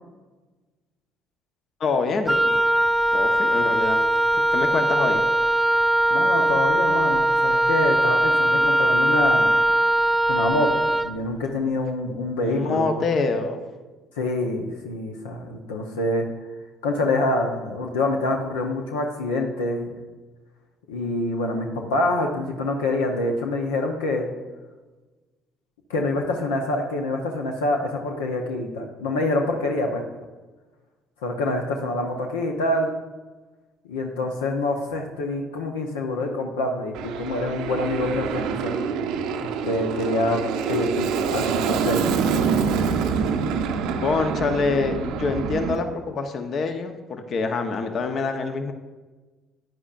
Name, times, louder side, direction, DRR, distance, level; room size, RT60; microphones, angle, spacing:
voice 1, 1.8-2.6 3.1-4.0 4.3-5.2 12.4-13.6 44.0-48.7, left 4 dB, 55° left, 6 dB, 0.9 m, -26 dB
Wind instrument woodwind instrument, 2.3-11.1, right 1 dB, 10° right, 0.3 m, -20 dB
voice 2, 6.1-9.5 10.3-12.9 14.2-16.3 16.8-19.9 20.9-24.3 25.9-30.0 31.2-33.0 33.8-38.7 39.4-40.4 40.7-42.1, left 2 dB, 85° left, 2 dB, 0.7 m, -26 dB
Aircraft, 36.9-45.8, right 6 dB, 70° right, 0.6 m, -26 dB
9.6 x 9.1 x 2.5 m, 1.2 s
hypercardioid pair, 55°, 0 cm